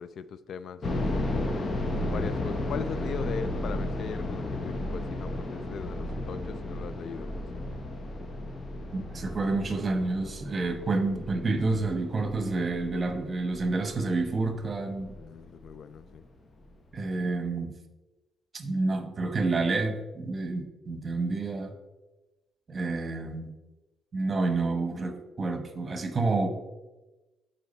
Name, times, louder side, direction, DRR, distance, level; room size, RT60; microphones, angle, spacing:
voice 1, 0.0-1.4 2.0-7.6 15.1-16.2, left 7 dB, 65° left, 15 dB, 0.3 m, -39 dB
sound 1, 0.8-15.7 16.0-16.1 16.7-17.0, left 1 dB, 40° left, 0.9 m, -34 dB
voice 2, 8.9-15.1 16.9-17.7 18.5-21.7 22.7-23.5 24.1-26.5, right 3 dB, 35° right, 7 dB, 1.0 m, -29 dB
8.3 x 4.5 x 4.2 m, 1.1 s
cardioid pair, 90°, 0 cm